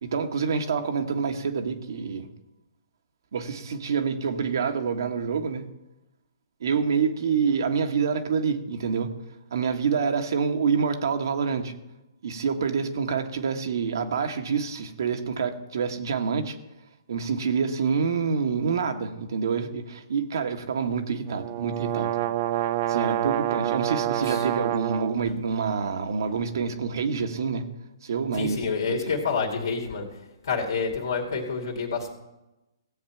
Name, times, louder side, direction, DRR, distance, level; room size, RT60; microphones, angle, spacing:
voice 1, 0.0-2.3 3.3-5.7 6.6-9.1 9.5-11.7 12.2-16.6 17.1-22.1 22.9-27.6 28.0-29.1, right 6 dB, 65° right, 6 dB, 1.4 m, -27 dB
sound 1, 21.3-25.2, right 13 dB, 45° right, 0.6 m, -27 dB
voice 2, 28.3-30.1 30.4-32.1, left 5 dB, 75° left, 1 dB, 2.5 m, -28 dB
16.0 x 7.9 x 5.9 m, 0.97 s
hypercardioid pair, 135°, 2 cm